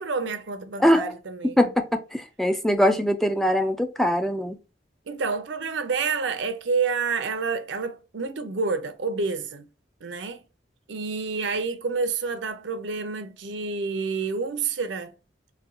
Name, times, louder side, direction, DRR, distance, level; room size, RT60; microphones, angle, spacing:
voice 1, 0.0-1.6 5.1-9.7 10.0-10.4 10.9-15.1, right 4 dB, 80° right, 0.6 m, -28 dB
voice 2, 0.8-1.1 1.4-4.6, equal, ahead, 0.3 m, -22 dB
4.1 x 2.3 x 2.5 m
head